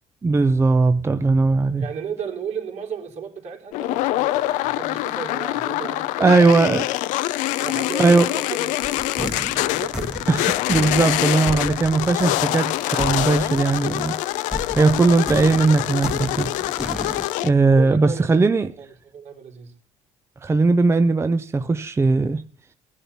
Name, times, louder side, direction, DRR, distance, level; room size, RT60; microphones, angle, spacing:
voice 1, 0.2-1.8 6.2-6.8 8.0-8.3 10.3-14.2 14.8-16.5 17.4-18.7 20.4-22.4, right 3 dB, 20° right, 0.7 m, -18 dB
voice 2, 1.8-6.8 7.6-8.7 9.2-10.1 14.6-14.8 17.7-18.3 18.8-19.7, right 6 dB, 65° right, 3.6 m, -34 dB
sound 1, 3.7-17.5, left 16 dB, 90° left, 0.7 m, -25 dB
sound 2, 8.8-14.1 14.5-17.3, right 1 dB, 5° right, 1.2 m, -34 dB
15.5 x 11.0 x 5.6 m
cardioid pair, 95°, 12 cm